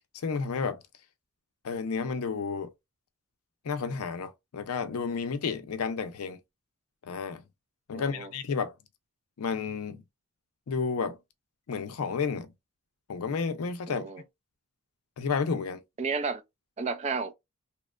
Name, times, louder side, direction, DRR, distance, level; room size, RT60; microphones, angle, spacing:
voice 1, 0.1-0.8 1.6-2.7 3.6-6.4 7.0-7.4 7.9-8.7 9.4-10.0 10.7-11.2 11.7-12.5 13.1-14.1 15.2-15.8, left 5 dB, 75° left, 0.5 m, -31 dB
voice 2, 7.9-8.3 13.9-14.2 16.0-16.4 16.8-17.3, right 4 dB, 30° right, 0.3 m, -32 dB
2.8 x 2.1 x 2.3 m
head